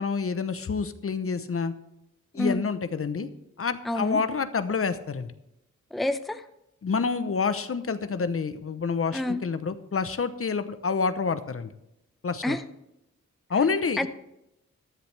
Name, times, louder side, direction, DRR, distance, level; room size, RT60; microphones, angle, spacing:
voice 1, 0.0-1.7 2.3-3.3 3.6-5.3 6.8-11.7 12.2-12.6 13.5-14.1, left 5 dB, 45° left, 11 dB, 0.8 m, -28 dB
voice 2, 3.9-4.2 5.9-6.4 9.1-9.4 12.4-12.6 14.0-14.1, left 1 dB, ahead, 9 dB, 0.6 m, -28 dB
14.5 x 10.0 x 3.4 m, 0.84 s
cardioid pair, 75°, 30 cm